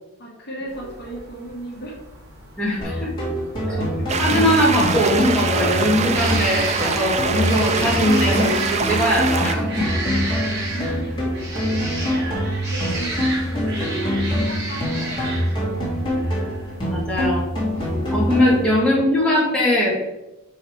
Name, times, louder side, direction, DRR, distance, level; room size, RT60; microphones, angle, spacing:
voice 1, 0.2-2.0 2.8-3.1 3.6-3.9 10.3-16.1 18.5-18.6, right 1 dB, 45° left, -3 dB, 1.6 m, -37 dB
sound 1, 0.7-18.8, right 2 dB, 50° right, 2.1 m, -34 dB
voice 2, 2.6-3.1 4.2-9.9 16.9-17.5 18.1-20.0, left 1 dB, 5° left, -6 dB, 1.9 m, -20 dB
sound 2, 2.8-18.8, equal, 20° left, 2.3 m, -25 dB
sound 3, 4.1-9.5, right 5 dB, 30° right, 0.4 m, -24 dB
6.4 x 4.8 x 4.7 m, 0.97 s
head